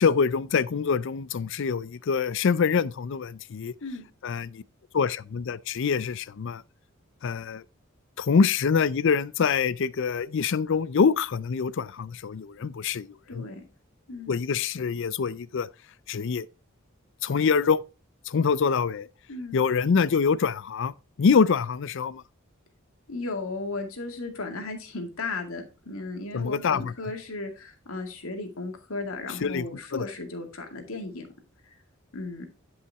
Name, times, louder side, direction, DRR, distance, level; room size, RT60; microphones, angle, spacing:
voice 1, 0.0-3.7 4.2-4.6 4.9-6.6 7.2-7.6 8.2-13.4 14.3-15.7 16.1-16.5 17.2-17.8 18.3-19.1 19.5-20.9 21.2-22.2 26.3-26.9 29.4-29.7 29.9-30.0, left 5 dB, 60° left, 0.4 m, -25 dB
voice 2, 13.3-13.6 14.1-14.3 19.3-19.6 23.1-31.3 32.1-32.5, left 3 dB, 90° left, 2.2 m, -35 dB
11.0 x 5.6 x 3.5 m
head